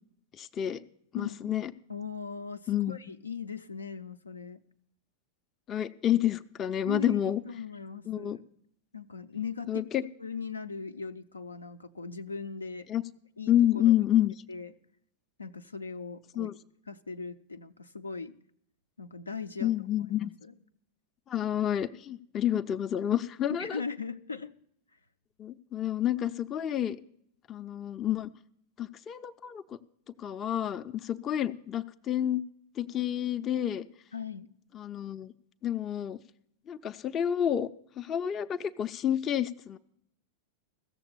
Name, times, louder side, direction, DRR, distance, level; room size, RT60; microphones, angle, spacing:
voice 1, 0.4-0.8 1.1-1.7 2.7-3.0 5.7-7.4 8.1-8.4 9.7-10.0 12.9-13.0 13.5-14.3 16.4-16.5 19.6-20.3 21.3-23.8 25.4-27.0 27.5-28.3 28.8-29.8 30.2-32.4 32.8-33.9 34.7-35.3 35.6-36.2 36.7-37.7 38.0-39.8, left 11 dB, 30° left, 9 dB, 0.5 m, -29 dB
voice 2, 1.2-1.6 1.9-4.6 6.9-8.4 8.9-9.9 10.2-12.9 13.4-14.0 14.5-14.7 15.4-16.5 16.9-18.4 19.0-19.7 20.1-20.5 23.5-24.5 34.1-34.5, left 5 dB, 80° left, 8 dB, 0.5 m, -39 dB
15.5 x 7.2 x 6.8 m, 0.70 s
figure-of-eight pair, 90°, 0 cm